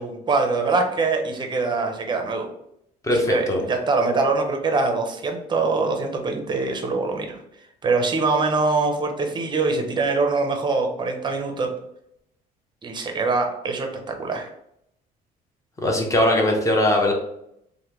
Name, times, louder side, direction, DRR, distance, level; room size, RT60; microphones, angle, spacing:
voice 1, 0.0-2.5 3.3-7.4 7.8-11.7 12.8-14.5, right 3 dB, 25° right, 3 dB, 0.6 m, -23 dB
voice 2, 3.0-3.6 15.8-17.1, left 1 dB, 20° left, 0 dB, 0.7 m, -20 dB
3.2 x 2.2 x 2.9 m, 0.76 s
cardioid pair, 110°, 17 cm